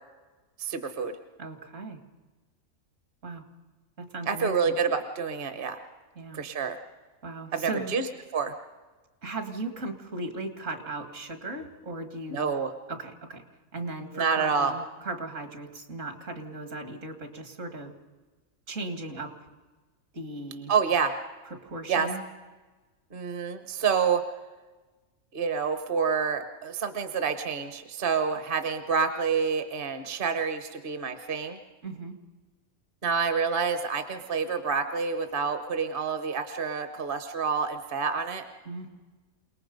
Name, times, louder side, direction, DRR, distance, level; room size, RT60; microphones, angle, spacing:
voice 1, 0.6-1.2 4.3-5.8 6.3-6.8 7.5-8.1 8.3-8.5 12.3-12.7 14.1-14.7 20.7-21.1 21.9-22.1 23.1-24.2 25.3-31.6 33.0-38.4, right 6 dB, 40° right, 8 dB, 1.2 m, -28 dB
voice 2, 1.4-2.0 3.2-3.4 4.0-4.8 6.2-6.4 7.2-7.9 9.2-12.5 12.9-13.4 13.7-17.9 18.7-19.3 20.1-20.7 21.5-22.2 31.8-32.1 38.6-39.0, right 2 dB, 60° right, 7 dB, 2.4 m, -37 dB
28.0 x 19.5 x 5.3 m, 1.3 s
omnidirectional pair, 1.5 m